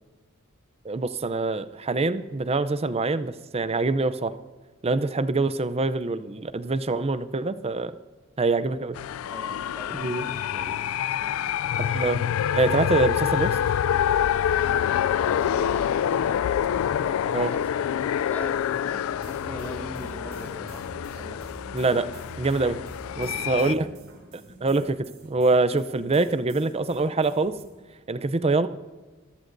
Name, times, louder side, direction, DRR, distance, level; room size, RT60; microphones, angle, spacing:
voice 1, 0.8-4.3 4.8-7.9 8.4-9.0 9.9-10.2 11.8-12.2 12.5-13.6 17.3-17.5 21.7-22.1 22.4-22.8 23.2-23.9 24.3-27.5 28.1-28.7, right 3 dB, 30° right, 13 dB, 0.5 m, -25 dB
sound 1, 8.9-23.7, left 9 dB, 80° left, 0.3 m, -26 dB
voice 2, 9.3-10.8 11.1-11.4 14.6-14.9 15.2-20.8 21.1-21.4 23.2-24.0, left 1 dB, 10° left, 2 dB, 1.8 m, -42 dB
sound 2, 19.1-27.6, right 1 dB, 70° right, 4.3 m, -45 dB
25.0 x 14.5 x 2.6 m, 1.3 s
head